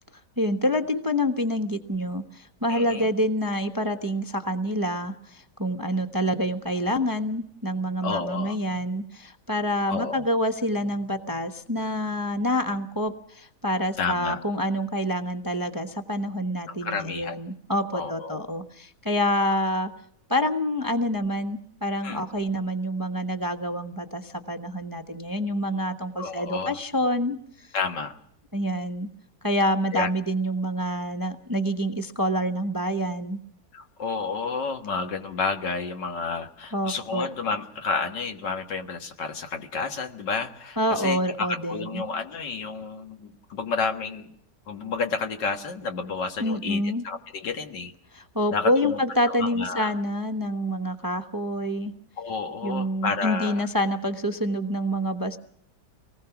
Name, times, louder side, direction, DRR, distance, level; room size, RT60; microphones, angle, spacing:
voice 1, 0.4-19.9 20.3-27.7 28.5-29.1 29.4-33.4 36.7-37.3 40.8-42.0 46.4-47.0 48.1-51.9 52.6-55.4, equal, 15° right, 7 dB, 0.8 m, -27 dB
voice 2, 2.7-3.1 8.0-8.6 9.9-10.2 14.0-14.4 16.7-17.4 17.9-18.4 22.0-22.2 26.2-26.8 27.7-28.2 29.9-30.1 33.7-44.3 44.7-47.9 48.5-49.0 49.3-49.9 52.2-53.7, left 4 dB, 85° left, 6 dB, 2.3 m, -30 dB
25.0 x 19.5 x 5.9 m, 0.71 s
omnidirectional pair, 1.8 m